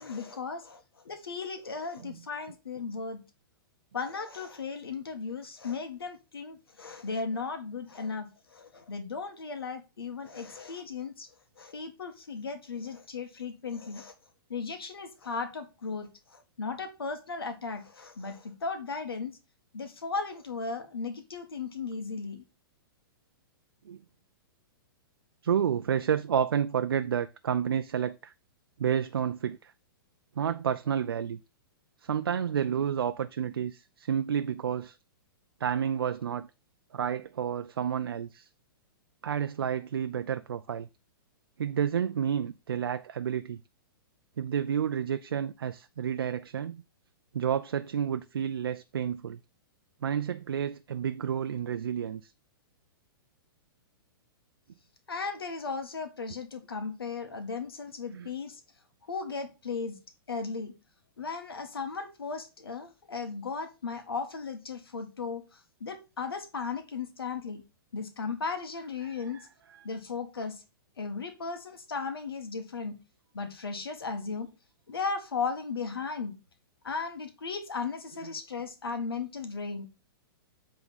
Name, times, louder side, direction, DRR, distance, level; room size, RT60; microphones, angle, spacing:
voice 1, 0.0-3.2 3.9-11.3 11.6-14.1 14.5-19.4 19.7-22.4 55.1-58.6 59.1-60.0 60.3-60.7 61.2-67.6 67.9-69.4 69.8-70.6 71.0-73.0 73.3-74.5 74.9-76.4 76.8-79.8, left 4 dB, 90° left, 1.7 m, -36 dB
voice 2, 25.4-28.3 28.8-29.7 30.4-31.4 32.0-35.0 35.6-36.5 36.9-38.5 39.2-40.9 41.6-43.6 44.4-46.8 47.3-49.4 50.0-52.3 58.1-58.3 69.2-69.9 78.2-78.4, right 8 dB, 85° right, 0.5 m, -30 dB
8.1 x 3.8 x 5.5 m
hypercardioid pair, 125°, 12 cm